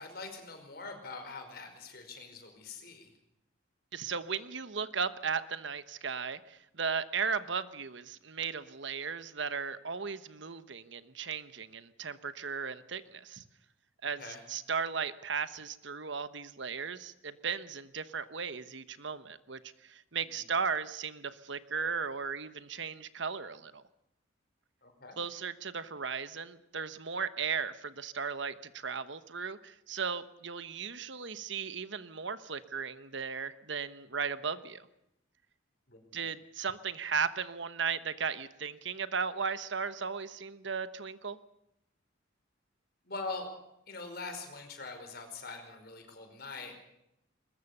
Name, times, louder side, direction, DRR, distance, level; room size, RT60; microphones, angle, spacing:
voice 1, 0.0-3.1 14.2-14.4 24.8-25.2 35.9-36.2 43.0-43.5 43.9-46.7, left 3 dB, 50° left, 6 dB, 5.1 m, -43 dB
voice 2, 3.9-13.4 14.0-14.2 14.5-23.8 25.2-34.9 36.1-41.4, right 6 dB, 65° right, 13 dB, 1.1 m, -36 dB
21.5 x 21.0 x 6.8 m, 0.83 s
head